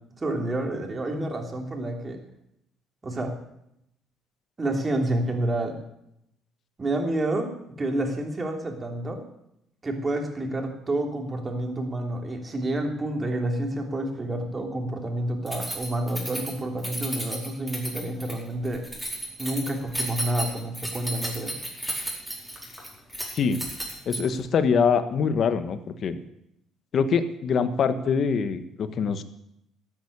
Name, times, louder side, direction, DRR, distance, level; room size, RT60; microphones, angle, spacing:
voice 1, 0.2-2.2 3.0-3.3 4.6-5.8 6.8-9.2 9.8-18.8 19.4-21.5, right 1 dB, 25° right, 2 dB, 3.1 m, -29 dB
Keys jangling, 15.5-24.5, equal, ahead, 4.7 m, -34 dB
voice 2, 24.1-26.2 26.9-29.2, left 6 dB, 50° left, 10 dB, 1.3 m, -24 dB
13.5 x 8.8 x 8.8 m, 0.79 s
cardioid pair, 100°, 0 cm